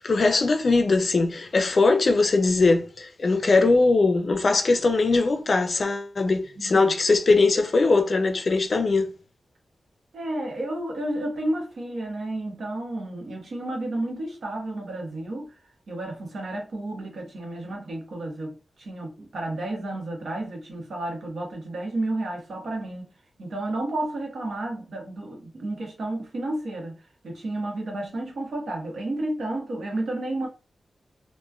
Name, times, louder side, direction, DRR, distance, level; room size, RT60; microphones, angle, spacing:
voice 1, 0.0-9.1, left 3 dB, 50° left, 0.5 m, -21 dB
voice 2, 6.6-6.9 10.1-15.5 15.9-23.1 23.4-30.5, right 1 dB, 75° right, 1.0 m, -31 dB
3.0 x 2.2 x 2.3 m
wide cardioid pair, 100°, 0 cm